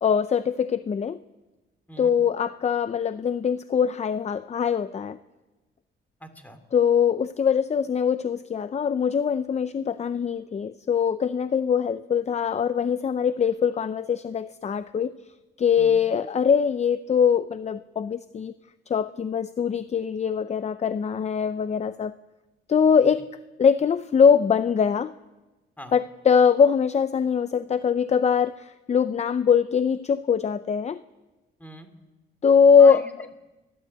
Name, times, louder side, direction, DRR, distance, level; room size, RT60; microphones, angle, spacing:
voice 1, 0.0-1.2 2.0-5.2 6.7-15.1 15.6-18.5 18.9-22.1 22.7-23.3 23.6-25.1 25.9-31.0 32.4-33.0, left 7 dB, 35° left, 13 dB, 0.6 m, -22 dB
voice 2, 6.2-6.6 15.8-16.0 25.8-25.9 31.6-31.9 32.8-33.3, equal, 10° left, 7 dB, 3.0 m, -43 dB
28.0 x 12.0 x 8.1 m, 1.1 s
cardioid pair, 90°, 20 cm